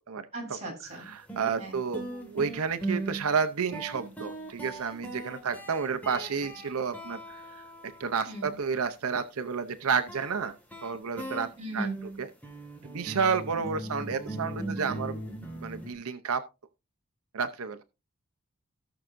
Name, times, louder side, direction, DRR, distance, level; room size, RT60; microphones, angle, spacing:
voice 1, 0.3-1.1 1.6-1.8 8.2-8.5 11.6-12.0, right 1 dB, 30° right, 3.9 m, -38 dB
voice 2, 0.8-10.5 10.8-11.9 12.2-12.3 12.8-15.2 15.5-16.5 17.3-17.8, right 5 dB, 85° right, 0.7 m, -31 dB
sound 1, 0.9-1.0 1.3-8.5 10.1-15.9, right 2 dB, 5° left, 1.8 m, -39 dB
18.0 x 6.1 x 2.6 m
head